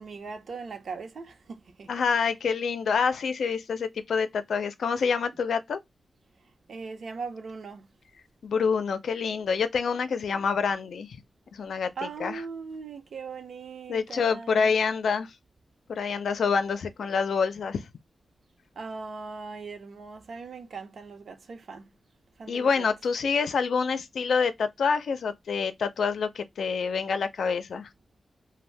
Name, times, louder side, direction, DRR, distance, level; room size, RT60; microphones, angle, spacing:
voice 1, 0.0-2.0 6.7-7.9 12.0-14.7 18.8-21.9 22.4-22.9, right 4 dB, 65° right, 0.7 m, -39 dB
voice 2, 1.9-5.8 8.4-11.1 11.5-11.9 12.2-12.4 13.9-15.3 15.9-17.8 22.5-27.9, left 5 dB, 90° left, 0.5 m, -27 dB
2.6 x 2.1 x 3.2 m
wide cardioid pair, 135°, 0 cm